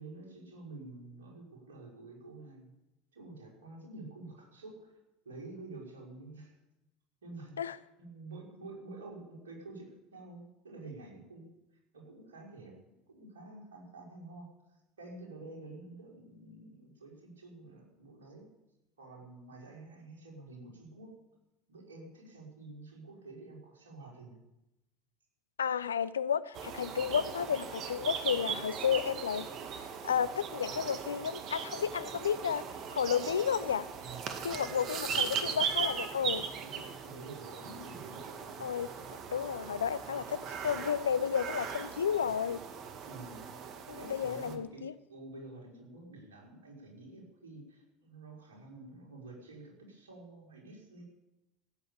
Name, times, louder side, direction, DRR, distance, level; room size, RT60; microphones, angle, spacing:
voice 1, 0.0-2.7 3.1-4.9 5.2-6.5 7.2-11.5 11.9-12.7 13.1-14.4 15.0-18.5 19.0-21.2 21.7-24.4 34.0-35.6 36.1-38.7 43.0-43.5 44.0-51.0, right 2 dB, 80° right, 5.7 m, -49 dB
voice 2, 25.6-29.5 30.0-33.9 34.4-36.5 38.6-38.9 39.3-42.6 43.9-44.9, left 7 dB, 85° left, 0.6 m, -32 dB
sound 1, 26.5-44.5, right 7 dB, 50° right, 2.0 m, -39 dB
15.5 x 8.7 x 8.8 m
hypercardioid pair, 70°, 0 cm